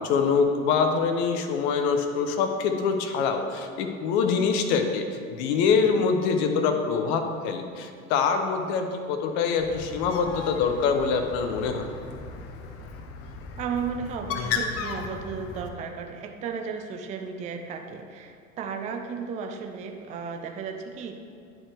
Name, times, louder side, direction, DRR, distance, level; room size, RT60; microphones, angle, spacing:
voice 1, 0.0-5.0 5.3-11.8, left 5 dB, 50° left, 5 dB, 0.9 m, -24 dB
Bird, 9.6-15.7, left 5 dB, 35° left, 0.7 m, -35 dB
voice 2, 13.6-21.1, right 6 dB, 20° right, 5 dB, 0.4 m, -34 dB
9.9 x 4.6 x 3.4 m, 2.4 s
hypercardioid pair, 85°, 42 cm